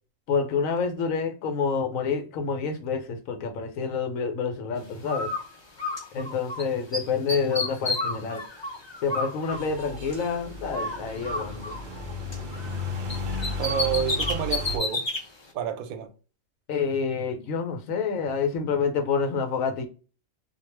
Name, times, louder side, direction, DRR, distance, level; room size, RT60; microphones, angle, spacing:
voice 1, 0.3-5.3 6.1-8.4 9.0-11.6 16.7-19.9, left 5 dB, 75° left, 1.1 m, -28 dB
Bird, 5.1-6.6 6.9-10.4 10.7-12.8 13.1-15.2, left 2 dB, 40° left, 0.4 m, -31 dB
sound 1, 9.5-14.8, left 3 dB, 60° right, 0.5 m, -34 dB
voice 2, 13.6-15.1 15.5-16.1, right 9 dB, 85° right, 1.0 m, -29 dB
2.4 x 2.2 x 3.1 m
omnidirectional pair, 1.4 m